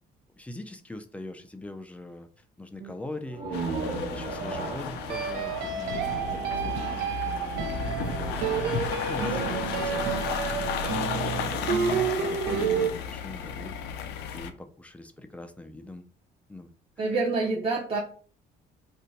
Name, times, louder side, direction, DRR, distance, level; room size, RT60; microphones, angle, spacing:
voice 1, 0.4-2.3 2.6-13.8 14.3-16.0 16.5-16.7 17.0-17.1, left 2 dB, 10° left, 7 dB, 0.3 m, -42 dB
sound 1, 2.8-3.0 5.1-12.9, right 6 dB, 85° right, 0.5 m, -29 dB
sound 2, 3.2-6.9, right 3 dB, 65° right, 1.0 m, -36 dB
sound 3, 3.5-14.5, left 8 dB, 80° left, 0.4 m, -34 dB
voice 2, 17.0-18.0, right 3 dB, 35° right, -3 dB, 0.6 m, -27 dB
2.6 x 2.1 x 3.9 m, 0.43 s
cardioid pair, 110°, 17 cm